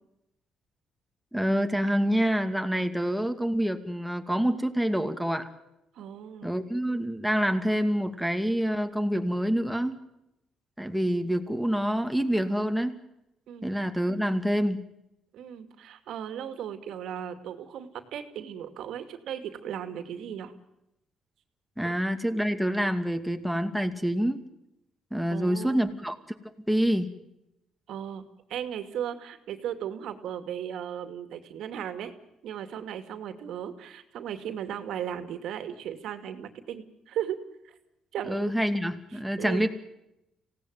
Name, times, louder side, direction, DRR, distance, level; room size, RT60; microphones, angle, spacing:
voice 1, 1.3-5.5 6.4-10.0 10.8-12.9 13.6-14.8 21.8-24.4 25.1-26.2 26.7-27.1 38.3-39.7, equal, ahead, 6 dB, 2.4 m, -27 dB
voice 2, 6.0-6.5 13.5-13.7 15.3-20.5 21.8-21.9 25.3-25.9 27.9-28.2 28.5-32.1 32.4-37.7 38.1-38.5 39.4-39.7, right 9 dB, 80° right, 9 dB, 2.5 m, -36 dB
25.5 x 17.5 x 9.5 m, 0.88 s
cardioid pair, 100°, 0 cm